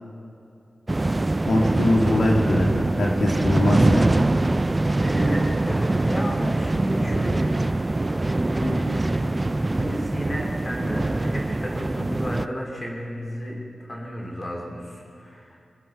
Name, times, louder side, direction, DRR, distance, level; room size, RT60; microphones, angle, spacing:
sound 1, 0.9-12.5, right 2 dB, 20° right, 0.3 m, -23 dB
voice 1, 1.5-4.2, left 1 dB, 70° left, -2 dB, 2.6 m, -22 dB
voice 2, 4.9-9.3 9.7-13.6 13.8-15.7, equal, 20° left, -2 dB, 3.3 m, -32 dB
25.0 x 11.5 x 4.6 m, 2.5 s
wide cardioid pair, 175°, 0 cm